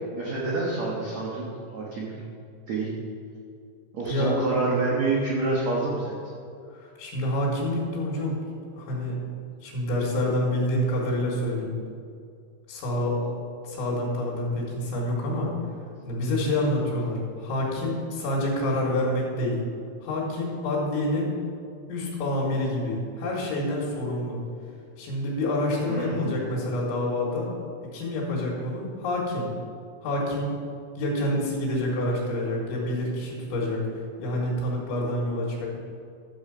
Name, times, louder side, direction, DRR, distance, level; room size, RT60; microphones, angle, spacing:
voice 1, 0.1-1.5 1.7-2.1 2.7-2.9 3.9-6.1 25.9-26.6, right 3 dB, 85° right, -4 dB, 1.5 m, -27 dB
voice 2, 4.1-4.4 6.7-8.4 8.8-9.2 9.6-11.8 12.7-13.3 13.6-15.5 16.0-19.6 20.0-21.3 21.9-24.4 25.0-27.5 27.9-29.5 30.0-30.5 31.0-33.9 34.2-35.7, left 1 dB, 85° left, -5 dB, 4.1 m, -27 dB
12.5 x 7.0 x 5.3 m, 2.3 s
omnidirectional pair, 5.3 m